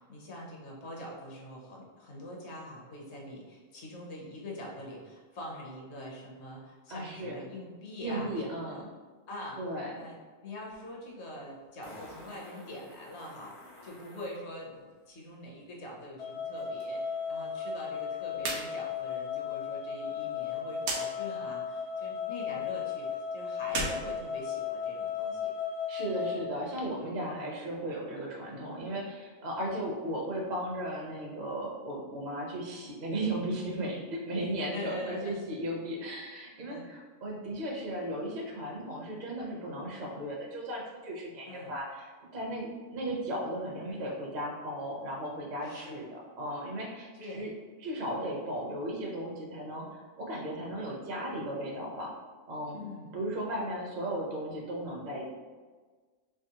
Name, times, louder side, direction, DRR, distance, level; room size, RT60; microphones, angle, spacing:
voice 1, 0.0-8.8 9.3-9.6 9.9-25.5 27.2-27.4 34.7-35.3 36.7-36.9 41.5-41.7 45.6-46.0 47.1-47.5 52.7-53.1, left 1 dB, 60° left, -2 dB, 0.9 m, -44 dB
voice 2, 6.9-7.4 8.0-8.9 9.6-9.9 25.9-47.5 47.8-49.9 50.2-52.1 52.5-52.8 53.1-55.3, right 1 dB, 40° right, -2 dB, 0.7 m, -36 dB
Fart, 10.7-10.8 11.8-14.4 16.8-16.9, left 1 dB, 90° left, 1.4 m, -50 dB
sound 1, 16.2-26.4, left 7 dB, 40° left, 0.6 m, -35 dB
sound 2, 18.4-18.7 19.0-19.1 20.8-21.0 23.6-24.9, right 3 dB, 70° right, 0.9 m, -34 dB
3.5 x 2.9 x 2.9 m, 1.4 s
omnidirectional pair, 1.4 m